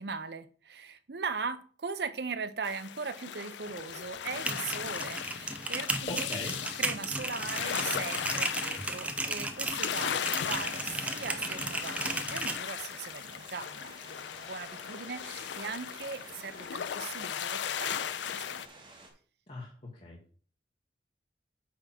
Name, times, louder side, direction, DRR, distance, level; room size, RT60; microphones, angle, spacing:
voice 1, 0.0-6.3 6.7-18.8, right 5 dB, 65° right, 10 dB, 0.7 m, -39 dB
sound 1, 2.6-18.7, left 9 dB, 80° left, 0.4 m, -37 dB
sound 2, 4.3-12.6, right 2 dB, 5° right, 0.6 m, -35 dB
voice 2, 6.1-6.5 19.5-20.4, left 1 dB, 35° left, -4 dB, 1.8 m, -40 dB
sound 3, 10.6-19.1, right 2 dB, 25° right, 1.9 m, -53 dB
8.7 x 3.6 x 5.8 m, 0.42 s
head